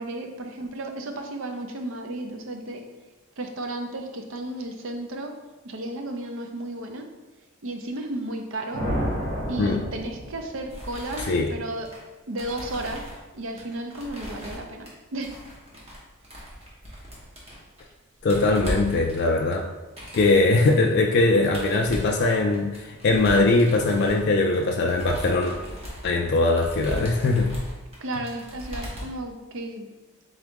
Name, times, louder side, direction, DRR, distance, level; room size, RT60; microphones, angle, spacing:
voice 1, 0.0-2.9 3.4-5.4 5.6-7.1 7.6-8.9 9.5-11.9 12.3-13.1 13.3-15.4 28.0-29.9, right 1 dB, 60° right, 4 dB, 0.5 m, -33 dB
sound 1, 8.7-10.7, equal, 45° right, 1.3 m, -30 dB
sound 2, 10.7-12.0 12.4-13.2 13.6-14.9 15.2-16.0 16.2-17.9 18.1-20.7 21.4-29.2, equal, 25° right, 1.0 m, -37 dB
voice 2, 18.2-19.7 20.1-25.6 26.0-27.5, left 2 dB, 50° left, 1 dB, 0.3 m, -21 dB
3.9 x 3.6 x 3.6 m, 1.2 s
head